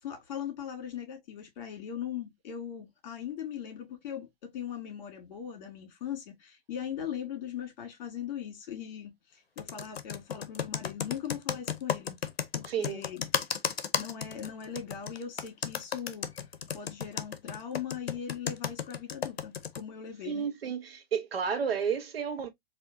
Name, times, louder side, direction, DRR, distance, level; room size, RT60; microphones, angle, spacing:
voice 1, 0.0-12.2 12.5-13.2 14.0-16.3 16.7-20.5, left 9 dB, 45° left, 2.2 m, -39 dB
Computer keyboard, 9.6-19.8, left 7 dB, 85° left, 0.7 m, -33 dB
voice 2, 12.6-13.0 20.2-22.5, right 7 dB, 75° right, 1.1 m, -31 dB
4.2 x 2.7 x 2.6 m
hypercardioid pair, 130°, 30 cm